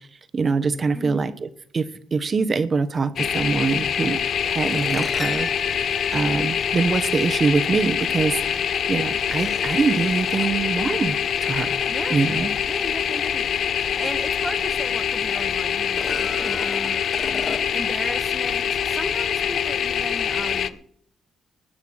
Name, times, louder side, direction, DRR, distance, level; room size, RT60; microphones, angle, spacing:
voice 1, 0.3-1.5 1.7-11.7 12.1-12.5, right 4 dB, 40° right, 1.2 m, -24 dB
voice 2, 0.9-1.2 11.9-12.2 12.7-13.7 14.0-17.1 17.7-20.8, equal, 5° right, 1.2 m, -35 dB
sound 1, 3.2-20.7, left 8 dB, 60° left, 0.7 m, -25 dB
sound 2, 4.6-7.1 8.3-8.4 9.2-10.7 14.0-14.1 14.5-14.6 15.8-18.0, left 3 dB, 30° left, 1.8 m, -35 dB
20.0 x 7.0 x 6.5 m
cardioid pair, 90°, 0 cm